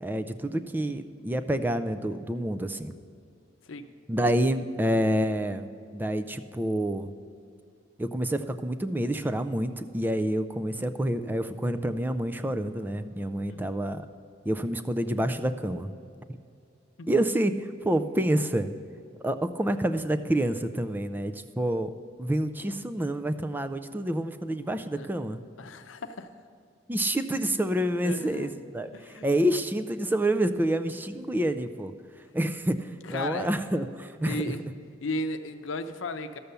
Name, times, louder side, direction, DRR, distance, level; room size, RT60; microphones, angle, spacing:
voice 1, 0.0-2.9 4.1-7.1 8.0-14.1 14.5-15.9 17.1-18.7 19.2-21.9 22.2-25.4 26.9-28.9 29.2-31.9 32.3-34.4, right 1 dB, 10° right, 9 dB, 0.4 m, -28 dB
voice 2, 25.6-26.3 28.0-28.5 28.9-29.3 33.0-33.5 34.3-34.6 35.0-36.4, left 2 dB, 90° left, 9 dB, 0.7 m, -35 dB
12.5 x 6.9 x 6.7 m, 2.4 s
head